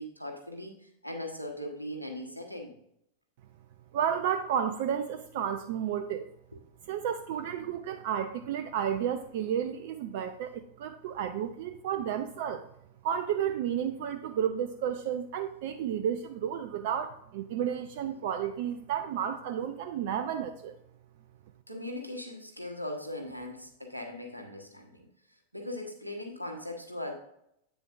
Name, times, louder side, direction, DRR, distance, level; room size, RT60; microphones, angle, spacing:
voice 1, 0.0-2.7 21.7-25.1 25.5-27.1, left 1 dB, 90° right, 2 dB, 1.2 m, -39 dB
voice 2, 3.9-6.3 6.9-12.6 13.0-20.7, right 9 dB, 50° right, 9 dB, 0.4 m, -32 dB
8.4 x 7.0 x 2.5 m, 0.77 s
figure-of-eight pair, 90°, 0 cm